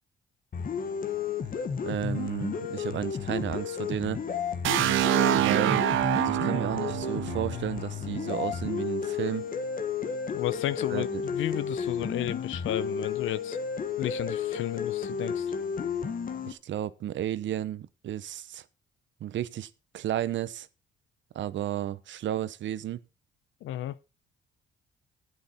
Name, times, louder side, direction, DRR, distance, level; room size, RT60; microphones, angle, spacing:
sound 1, 0.5-16.5, left 6 dB, 45° left, 1.4 m, -32 dB
voice 1, 1.8-4.2 5.3-5.9 6.1-9.5 10.9-11.2 16.5-18.6 19.2-20.7 21.3-23.0, right 12 dB, 70° right, 0.9 m, -33 dB
sound 2, 4.6-8.5, right 12 dB, 85° right, 1.0 m, -26 dB
voice 2, 10.3-13.6 14.0-15.5 23.6-24.0, left 13 dB, 80° left, 0.8 m, -33 dB
11.5 x 8.7 x 4.2 m
cardioid pair, 90°, 20 cm